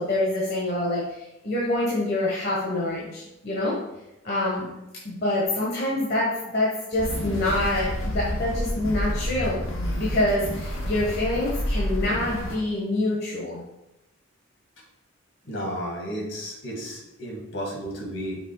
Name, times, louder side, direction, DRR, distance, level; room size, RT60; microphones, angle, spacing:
voice 1, 0.0-3.7 4.2-4.7 5.0-13.6, left 1 dB, 50° left, -5 dB, 1.2 m, -26 dB
sound 1, 6.9-12.5, equal, 90° left, 1.4 m, -29 dB
voice 2, 15.5-18.4, equal, 70° left, -1 dB, 2.0 m, -33 dB
5.9 x 3.9 x 4.8 m, 0.92 s
head